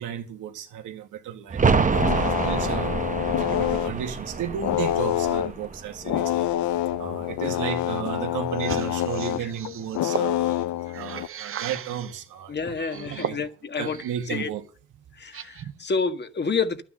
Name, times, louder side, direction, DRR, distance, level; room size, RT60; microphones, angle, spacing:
voice 1, 0.0-2.9 3.4-6.5 7.0-13.4 13.8-14.6, right 9 dB, 85° right, 2.1 m, -34 dB
sound 1, 1.5-7.1 7.4-7.5, right 5 dB, 25° right, 1.0 m, -27 dB
sound 2, 1.6-4.0 4.6-5.7 6.1-11.3, left 13 dB, 70° left, 0.7 m, -26 dB
sound 3, 8.5-12.2 12.8-14.4 14.8-15.8, right 9 dB, 45° right, 0.7 m, -37 dB
voice 2, 12.5-14.5 15.1-16.8, left 5 dB, 35° left, 1.7 m, -29 dB
11.5 x 9.9 x 6.6 m
cardioid pair, 90°, 30 cm